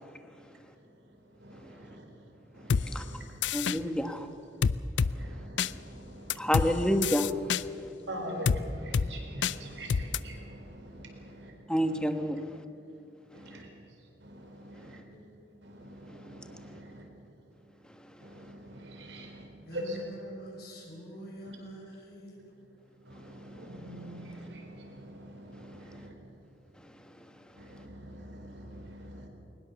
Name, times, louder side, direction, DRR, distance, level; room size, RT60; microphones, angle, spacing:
sound 1, 2.7-2.8 3.4-3.8 4.6-5.1 5.6-5.7 6.3-6.7 7.0-7.6 8.4-8.6 8.9-9.1 9.4-9.5 9.9-10.2, left 6 dB, 90° left, 0.5 m, -26 dB
voice 1, 3.5-4.3 6.4-7.5 11.7-12.6, equal, 5° left, 7 dB, 1.3 m, -28 dB
voice 2, 5.2-5.8 6.1-6.2 8.1-10.4 11.0-11.1 13.4-13.7 14.3-14.9 16.0-16.1 16.4-16.9 18.2-19.3 19.7-20.0 21.4-21.6 23.4-25.7 27.7-27.8 28.4-28.6 28.9-29.3, equal, 85° right, 2 dB, 4.4 m, -42 dB
voice 3, 19.7-22.3, right 1 dB, 60° left, -2 dB, 5.9 m, -46 dB
22.0 x 20.0 x 7.0 m, 2.5 s
head